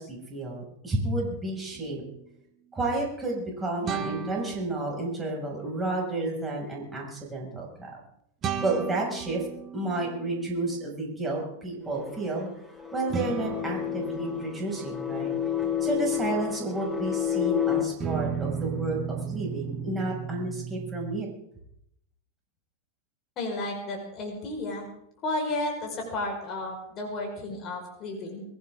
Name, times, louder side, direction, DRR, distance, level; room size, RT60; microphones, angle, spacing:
voice 1, 0.0-2.0 2.7-8.0 8.6-9.5 9.7-12.5 12.9-15.3 15.6-21.3, right 2 dB, 15° right, -1 dB, 6.4 m, -31 dB
sad guitar strings, 3.8-5.5 8.4-10.8 13.1-17.4 18.0-21.2, right 7 dB, 30° right, 1.5 m, -36 dB
sound 1, 11.9-17.8, left 10 dB, 5° left, 3.1 m, -30 dB
voice 2, 23.4-24.9 25.2-28.4, left 2 dB, 30° left, 1 dB, 5.0 m, -32 dB
22.5 x 16.0 x 3.8 m, 0.76 s
figure-of-eight pair, 90°, 0 cm